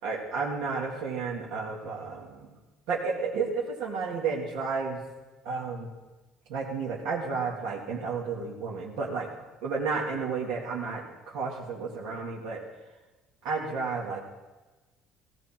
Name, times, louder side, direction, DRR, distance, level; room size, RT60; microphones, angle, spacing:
voice 1, 0.0-2.5 2.9-5.0 5.4-5.9 6.5-9.3 9.6-12.6 13.4-14.2, right 4 dB, 80° right, -4 dB, 2.3 m, -32 dB
18.0 x 16.0 x 4.5 m, 1.2 s
cardioid pair, 180°, 0 cm